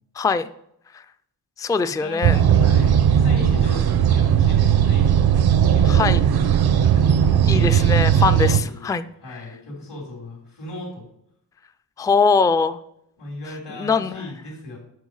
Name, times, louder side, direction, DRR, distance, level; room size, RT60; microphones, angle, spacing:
voice 1, 0.2-0.5 0.9-1.0 1.6-2.4 5.9-6.2 7.5-9.4 12.0-12.8 13.8-14.3, left 5 dB, 10° left, 12 dB, 0.3 m, -22 dB
voice 2, 1.8-5.1 5.7-6.5 6.8-8.8 9.2-11.1 13.2-14.8, left 2 dB, 85° left, -4 dB, 3.5 m, -37 dB
sound 1, 2.2-8.6, right 9 dB, 70° right, 0.7 m, -17 dB
9.4 x 6.2 x 4.8 m, 0.75 s
wide cardioid pair, 120°, 40 cm